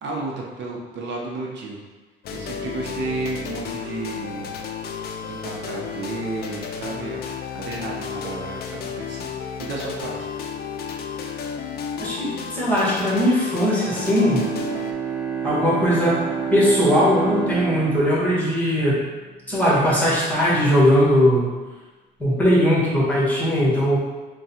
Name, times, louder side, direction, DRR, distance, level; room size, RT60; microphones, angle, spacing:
voice 1, 0.0-1.8 2.3-4.5 5.2-9.3 9.6-10.3, right 3 dB, 70° right, -2 dB, 0.7 m, -32 dB
sound 1, 2.2-14.9, left 6 dB, 55° left, 0.4 m, -32 dB
voice 2, 12.0-14.4 15.4-16.1 16.5-19.0 19.5-21.5 22.2-24.0, equal, 10° left, -7 dB, 1.4 m, -19 dB
Bowed string instrument, 13.9-19.5, right 6 dB, 35° right, 0.6 m, -29 dB
3.5 x 2.3 x 4.2 m, 1.3 s
cardioid pair, 110°, 19 cm